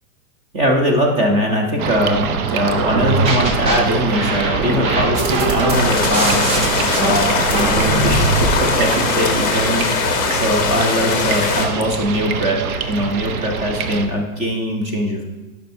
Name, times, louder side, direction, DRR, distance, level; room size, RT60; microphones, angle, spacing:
voice 1, 0.5-6.4 7.0-15.2, equal, 15° right, 2 dB, 0.5 m, -21 dB
sound 1, 1.8-14.1, right 6 dB, 80° right, 0.8 m, -24 dB
sound 2, 2.9-3.8 4.1-8.5, right 2 dB, 40° right, 1.3 m, -21 dB
sound 3, 5.7-11.7, left 6 dB, 20° left, 0.7 m, -21 dB
11.5 x 5.6 x 2.7 m, 1.1 s
supercardioid pair, 155°, 43 cm